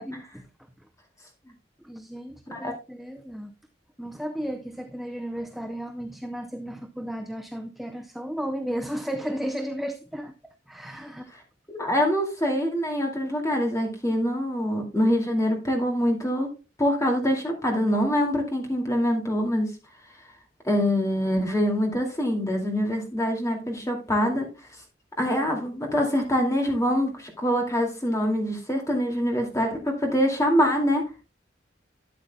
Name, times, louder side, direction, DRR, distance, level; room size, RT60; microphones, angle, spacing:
voice 1, 0.1-0.4 1.8-3.5 4.0-11.3, equal, ahead, 0.5 m, -34 dB
voice 2, 11.7-16.5 16.8-19.7 20.6-24.5 25.2-31.0, equal, 15° left, 2.4 m, -24 dB
12.5 x 8.5 x 2.3 m
head